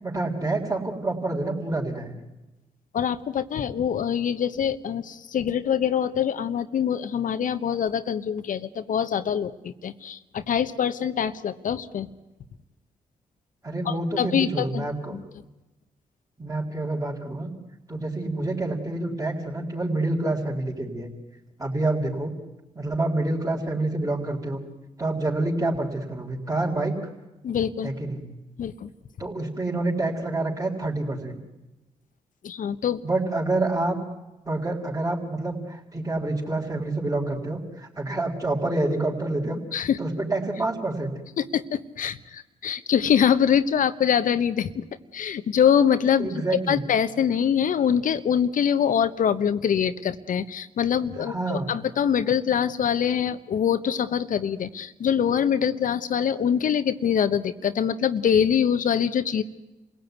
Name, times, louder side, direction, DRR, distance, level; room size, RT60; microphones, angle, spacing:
voice 1, 0.0-2.2 13.6-15.2 16.4-17.5 17.9-21.1 21.6-22.3 22.8-24.6 25.0-26.9 27.8-28.2 29.2-31.4 33.0-34.0 34.5-41.1 46.2-46.8 51.2-51.7, right 2 dB, 25° right, -4 dB, 4.4 m, -27 dB
voice 2, 2.9-12.1 13.8-15.2 27.4-27.9 28.6-28.9 32.4-33.0 39.7-40.0 41.4-44.8 45.1-46.4 46.7-59.4, left 8 dB, 70° left, 12 dB, 1.1 m, -24 dB
27.5 x 17.0 x 9.4 m, 1.0 s
supercardioid pair, 50°, 14 cm